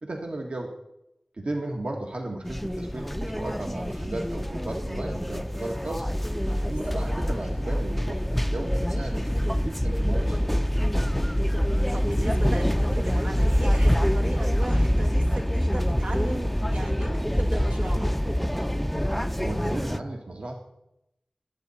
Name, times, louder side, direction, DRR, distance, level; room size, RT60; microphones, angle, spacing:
voice 1, 0.0-0.7 1.3-6.1 6.7-10.5 19.4-20.5, right 2 dB, 65° right, 1 dB, 1.7 m, -35 dB
sound 1, 2.4-20.0, equal, 5° left, 0.5 m, -25 dB
voice 2, 11.9-18.1, right 2 dB, 85° right, -1 dB, 1.9 m, -37 dB
22.0 x 8.9 x 4.2 m, 0.86 s
wide cardioid pair, 70°, 2 cm